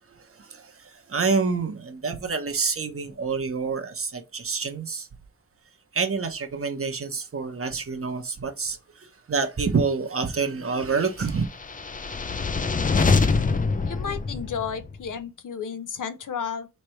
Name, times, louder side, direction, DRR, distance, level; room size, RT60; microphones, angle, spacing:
voice 1, 0.4-0.7 1.1-5.1 5.9-11.4, right 5 dB, 45° right, 0.9 m, -27 dB
sound 1, 11.5-15.0, left 4 dB, 25° left, 0.4 m, -24 dB
voice 2, 13.9-16.7, left 7 dB, 70° left, 0.7 m, -32 dB
3.3 x 3.2 x 4.4 m
wide cardioid pair, 100°, 32 cm